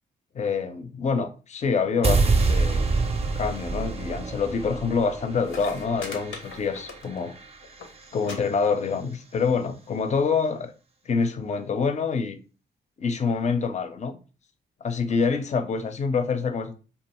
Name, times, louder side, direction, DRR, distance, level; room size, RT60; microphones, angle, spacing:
voice 1, 0.3-2.9 3.3-7.3 8.1-10.7 11.1-12.4 13.0-14.2 14.8-16.8, left 5 dB, 35° left, 0.5 m, -26 dB
sound 1, 2.0-8.2, right 3 dB, 30° right, 0.5 m, -27 dB
sound 2, 5.1-5.2 5.4-7.4 7.6-7.9 8.2-8.4 8.6-9.1 10.0-10.1, left 4 dB, 80° left, 0.7 m, -40 dB
2.4 x 2.2 x 2.9 m
cardioid pair, 70°, 20 cm